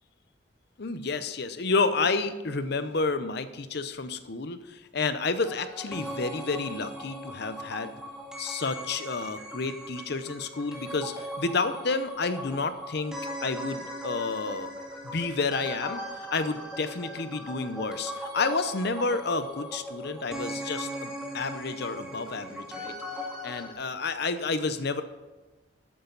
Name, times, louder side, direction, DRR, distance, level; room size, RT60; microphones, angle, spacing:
voice 1, 0.8-7.9 8.4-14.7 15.0-22.9 23.4-25.0, left 4 dB, 60° left, 11 dB, 0.7 m, -30 dB
sound 1, 5.5-23.7, equal, 5° right, 2.0 m, -39 dB
12.5 x 8.7 x 4.0 m, 1.2 s
head